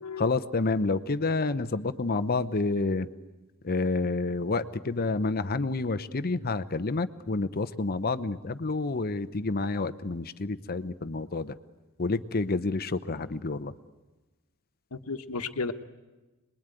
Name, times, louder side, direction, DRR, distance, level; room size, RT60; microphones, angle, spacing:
voice 1, 0.2-3.1 3.6-11.5 12.0-13.7, left 3 dB, 45° left, 13 dB, 0.8 m, -29 dB
voice 2, 14.9-15.7, left 4 dB, 85° left, 8 dB, 1.3 m, -33 dB
27.0 x 21.5 x 9.1 m, 1.1 s
head